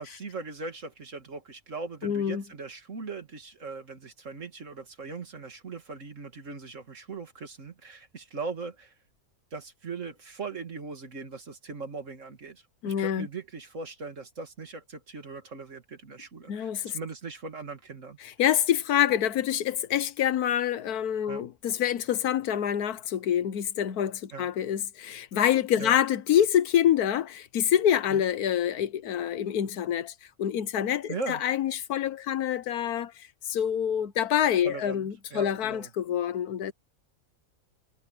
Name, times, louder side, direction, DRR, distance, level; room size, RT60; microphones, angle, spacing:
voice 1, 0.0-8.9 9.5-18.2 21.3-21.5 24.3-24.5 25.8-26.0 28.1-28.2 31.1-31.4 34.6-35.9, right 4 dB, 55° right, 2.5 m, -39 dB
voice 2, 2.0-2.4 12.8-13.3 16.5-17.0 18.2-30.1 30.4-33.1 33.5-36.7, left 10 dB, 90° left, 1.4 m, -26 dB
omnidirectional pair, 1.6 m